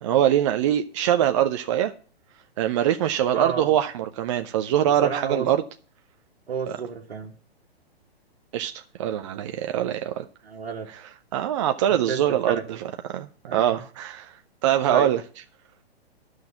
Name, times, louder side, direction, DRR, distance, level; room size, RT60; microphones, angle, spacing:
voice 1, 0.0-1.9 2.6-5.6 6.7-6.8 8.5-10.2 11.3-12.8 13.1-14.3 14.6-15.2, right 11 dB, 30° right, 0.5 m, -23 dB
voice 2, 3.3-3.7 4.8-5.5 6.5-7.3 10.4-10.9 11.9-12.2 12.5-12.6 13.4-13.7 14.9-15.1, right 6 dB, 70° right, 1.6 m, -31 dB
11.5 x 6.3 x 7.1 m
figure-of-eight pair, 120°, 31 cm